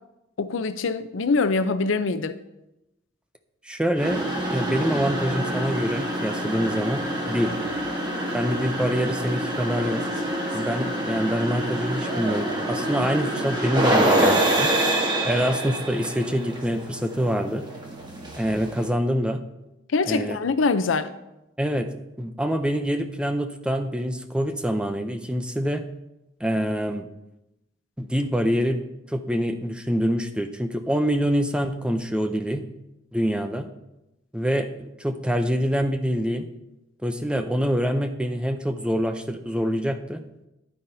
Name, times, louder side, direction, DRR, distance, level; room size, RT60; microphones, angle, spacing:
voice 1, 0.4-2.4 19.9-21.1, left 4 dB, 85° left, 0.6 m, -24 dB
voice 2, 3.6-7.6 8.3-10.0 10.5-14.7 15.2-17.7 18.3-19.4 20.0-20.4 21.6-21.9 22.2-25.8 26.4-27.1 28.0-28.8 29.1-32.7 33.1-33.7 34.3-36.5 37.0-40.2, equal, 5° right, 0.5 m, -25 dB
sound 1, 4.0-18.9, right 1 dB, 25° right, 1.3 m, -26 dB
10.5 x 9.5 x 2.7 m
head